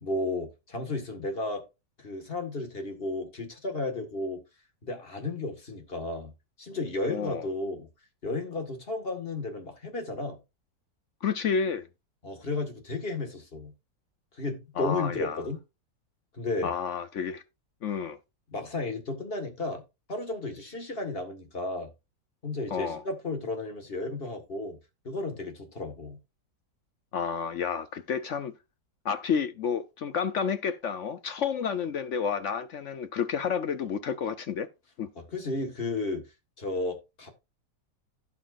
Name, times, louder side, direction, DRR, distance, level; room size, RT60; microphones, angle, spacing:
voice 1, 0.0-1.6 2.0-4.4 4.8-6.3 6.6-7.9 8.2-10.4 12.2-13.7 14.4-15.6 16.3-16.7 18.5-19.8 20.1-21.9 22.4-24.8 25.0-26.2 35.2-36.2 36.6-37.3, left 2 dB, 35° left, 1.9 m, -33 dB
voice 2, 7.1-7.5 11.2-11.9 14.8-15.4 16.6-17.4 17.8-18.2 22.7-23.0 27.1-28.5 29.0-34.7 35.0-35.1, left 6 dB, 60° left, 0.8 m, -30 dB
16.0 x 5.8 x 2.5 m
omnidirectional pair, 1.8 m